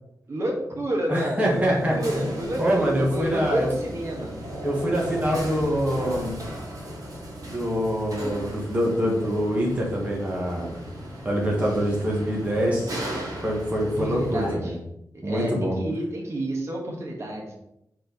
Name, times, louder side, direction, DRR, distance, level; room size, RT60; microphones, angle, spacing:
voice 1, 0.3-4.3 14.0-14.7 15.2-15.5 15.8-17.6, right 1 dB, 45° right, -1 dB, 1.2 m, -29 dB
voice 2, 1.1-2.3 2.6-3.7 4.6-6.4 7.4-10.8 11.2-12.9 13.4-14.8 15.2-15.8, equal, 20° right, -3 dB, 1.4 m, -25 dB
sound 1, 1.4-14.5, right 1 dB, 65° right, 1.9 m, -36 dB
4.4 x 4.4 x 5.3 m, 0.80 s
wide cardioid pair, 170°, 7 cm